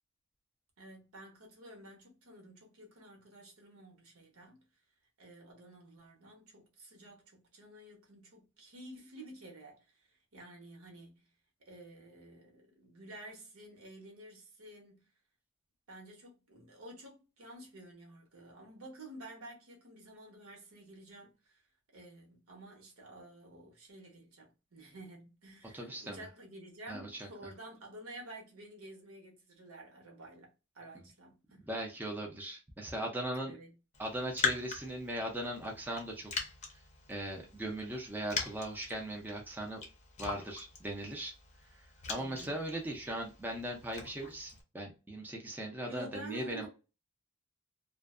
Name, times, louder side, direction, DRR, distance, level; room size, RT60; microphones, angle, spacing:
voice 1, 0.8-4.6 5.2-11.3 11.6-15.1 15.9-21.6 21.9-31.6 33.4-33.8 42.1-42.6 45.8-46.7, right 1 dB, 75° right, 1.0 m, -51 dB
voice 2, 25.7-26.3 26.9-27.3 30.9-31.0 31.7-33.5 34.0-36.3 37.1-39.8 40.2-41.3 42.1-46.7, right 1 dB, 10° right, 0.5 m, -39 dB
Raindrop, 33.9-44.6, left 4 dB, 35° left, 0.6 m, -42 dB
2.5 x 2.2 x 2.4 m
head